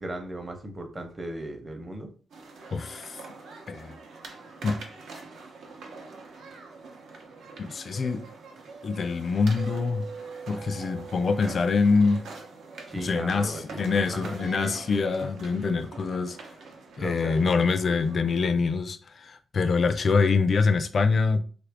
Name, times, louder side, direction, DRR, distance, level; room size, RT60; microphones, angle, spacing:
voice 1, 0.0-2.1 12.9-13.8 14.1-14.7 17.0-17.5, right 1 dB, 25° right, 0.7 m, -37 dB
sound 1, 2.3-18.7, right 3 dB, 85° right, 0.7 m, -45 dB
voice 2, 2.7-3.2 3.7-3.9 4.6-4.8 7.6-8.2 8.8-10.1 10.5-12.3 13.0-16.4 17.0-21.4, left 4 dB, 50° left, 0.3 m, -25 dB
Mallet percussion, 9.6-13.0, right 5 dB, 50° right, 1.0 m, -43 dB
3.2 x 2.5 x 3.4 m
cardioid pair, 100°, 0 cm